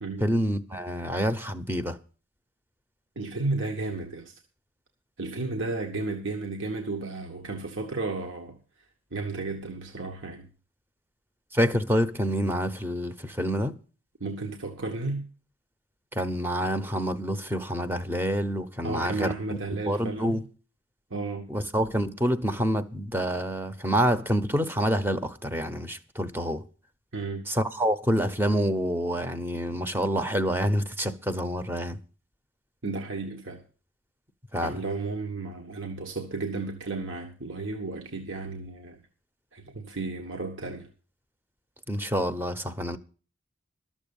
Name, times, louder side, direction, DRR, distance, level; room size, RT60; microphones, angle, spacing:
voice 1, 0.2-2.0 11.5-13.7 16.1-19.3 19.8-20.4 21.5-26.6 27.5-32.0 34.5-34.8 41.9-43.0, equal, 10° right, 0.7 m, -27 dB
voice 2, 3.1-4.3 5.2-8.6 9.1-10.5 14.2-15.3 18.8-20.4 21.1-21.4 27.1-27.4 32.8-33.6 34.6-39.0 39.5-40.9, right 3 dB, 70° right, 1.4 m, -33 dB
12.5 x 7.3 x 7.0 m
head